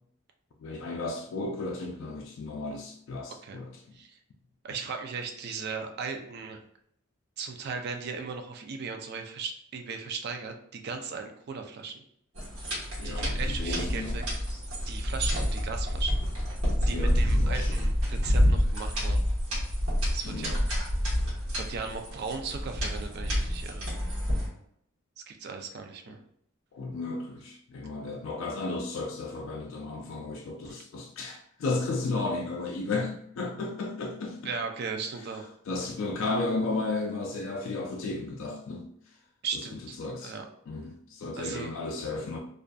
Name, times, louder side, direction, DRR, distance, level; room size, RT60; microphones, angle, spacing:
voice 1, 0.6-4.0 13.0-14.2 16.9-17.8 20.2-20.5 26.7-34.5 35.7-38.9 39.5-39.6 40.0-40.3 40.7-42.4, left 3 dB, 65° left, 1 dB, 0.3 m, -34 dB
voice 2, 4.6-6.6 7.4-12.0 13.0-14.4 14.9-16.2 16.9-19.2 20.1-20.6 21.5-23.9 25.2-26.2 30.7-30.8 34.4-35.5 39.4-40.5 41.4-41.7, right 5 dB, 50° right, 4 dB, 0.4 m, -37 dB
sound 1, 12.3-24.5, equal, 90° right, 1.1 m, -28 dB
2.5 x 2.3 x 2.2 m, 0.69 s
head